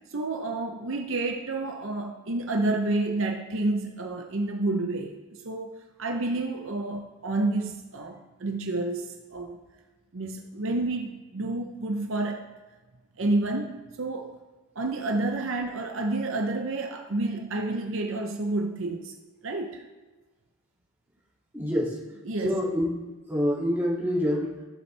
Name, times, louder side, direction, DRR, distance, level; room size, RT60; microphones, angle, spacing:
voice 1, 0.1-5.2 5.4-5.7 6.0-9.6 10.1-12.4 13.2-14.4 14.8-19.1 19.4-19.8 22.3-22.6, right 2 dB, 60° right, 3 dB, 0.7 m, -29 dB
voice 2, 21.5-22.0 22.4-22.9 23.3-24.5, equal, 10° right, -7 dB, 2.4 m, -26 dB
14.0 x 7.2 x 3.3 m, 1.2 s
head